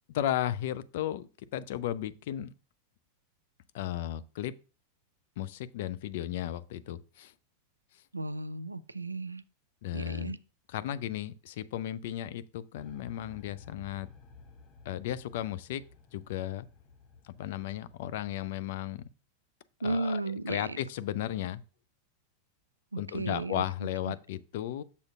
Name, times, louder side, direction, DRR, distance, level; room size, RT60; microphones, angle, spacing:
voice 1, 0.1-2.5 3.7-4.5 5.4-7.3 9.8-10.4 10.7-14.1 14.9-15.8 16.1-16.7 17.2-19.0 19.8-21.6 23.0-24.8, left 12 dB, 55° left, 0.4 m, -35 dB
voice 2, 8.1-9.4 9.9-10.4 19.8-20.8 22.9-23.6 24.1-24.2, right 2 dB, 80° right, 0.3 m, -34 dB
sound 1, 12.7-18.5, left 4 dB, 30° left, 0.8 m, -54 dB
6.9 x 6.4 x 2.4 m
figure-of-eight pair, 90°, 0 cm